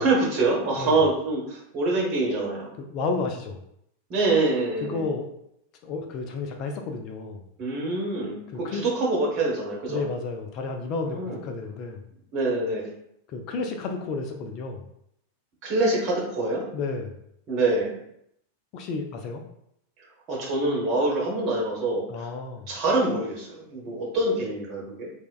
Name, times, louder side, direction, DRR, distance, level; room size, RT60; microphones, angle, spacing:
voice 1, 0.0-2.7 4.1-5.1 7.6-10.0 11.1-11.4 12.3-12.9 15.6-16.6 17.5-18.0 20.3-22.3 22.7-25.1, right 2 dB, 40° right, -2 dB, 0.9 m, -25 dB
voice 2, 2.8-3.6 4.8-5.3 5.8-7.4 8.5-8.8 9.9-12.0 13.3-14.9 16.7-17.2 18.7-19.4 22.1-22.7 23.9-24.0, left 4 dB, 40° left, 4 dB, 0.3 m, -32 dB
3.3 x 2.1 x 2.3 m, 0.74 s
figure-of-eight pair, 90°, 0 cm